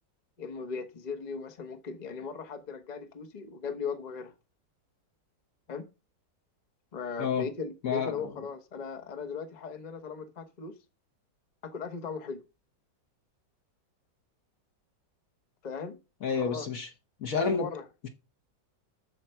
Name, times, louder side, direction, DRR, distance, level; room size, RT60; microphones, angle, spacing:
voice 1, 0.4-4.3 5.7-5.9 6.9-10.7 11.7-12.4 15.6-16.0 16.4-16.7 17.4-17.9, left 5 dB, 30° left, 1.0 m, -38 dB
voice 2, 7.8-8.3 16.2-16.9 17.2-17.7 18.0-18.1, left 6 dB, 55° left, 1.3 m, -30 dB
13.5 x 4.9 x 4.5 m
omnidirectional pair, 1.9 m